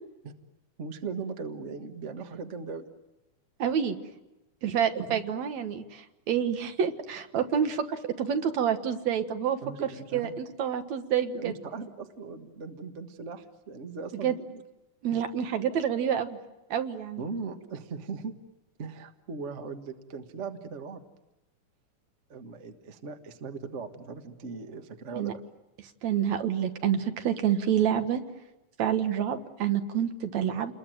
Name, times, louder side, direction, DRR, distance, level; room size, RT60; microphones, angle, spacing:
voice 1, 0.8-2.8 4.7-5.2 9.6-10.4 11.4-14.6 15.1-15.2 17.2-18.3 18.8-21.0 22.3-25.4, right 4 dB, 40° right, 7 dB, 1.1 m, -39 dB
voice 2, 3.6-4.0 4.6-9.6 10.1-11.5 14.2-14.4 15.0-16.4 16.7-17.2 25.2-25.3 26.0-28.2 28.8-30.7, right 8 dB, 65° right, 8 dB, 2.5 m, -28 dB
29.0 x 21.5 x 9.1 m, 0.98 s
omnidirectional pair, 3.5 m